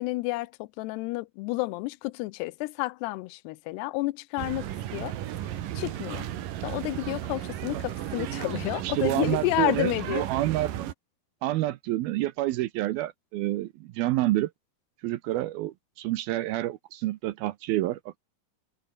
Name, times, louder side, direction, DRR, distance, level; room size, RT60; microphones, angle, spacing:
voice 1, 0.0-5.1 5.8-6.3 6.6-10.3, left 21 dB, 80° left, 2.6 m, -30 dB
sound 1, 4.4-10.9, right 12 dB, 60° right, 2.7 m, -34 dB
voice 2, 8.8-10.7 11.4-14.5 15.0-18.2, right 16 dB, 80° right, 2.4 m, -28 dB
omnidirectional pair, 5.0 m